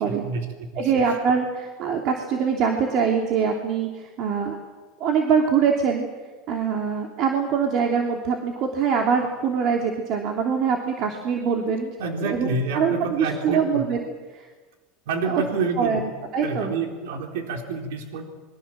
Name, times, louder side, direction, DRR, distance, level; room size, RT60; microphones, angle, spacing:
voice 1, 0.0-0.9 12.0-13.8 15.1-16.1 16.4-18.2, right 4 dB, 85° right, 3 dB, 3.9 m, -28 dB
voice 2, 0.8-4.6 5.0-6.1 6.5-11.9 12.2-14.5 15.3-15.4 15.8-16.7, right 6 dB, 45° right, 2 dB, 3.1 m, -24 dB
27.0 x 23.0 x 7.6 m, 1.3 s
supercardioid pair, 140°, 0 cm